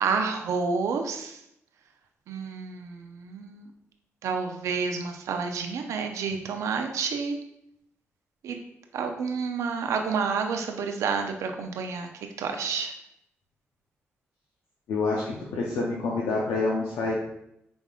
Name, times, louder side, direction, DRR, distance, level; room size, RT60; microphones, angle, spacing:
voice 1, 0.0-1.4 2.3-3.7 4.2-7.4 8.4-8.6 8.9-12.1 12.4-12.9, right 5 dB, 80° right, 4 dB, 0.5 m, -29 dB
voice 2, 14.9-17.1, left 3 dB, 85° left, -3 dB, 0.7 m, -27 dB
5.1 x 3.5 x 2.4 m, 0.78 s
supercardioid pair, 50°, 5 cm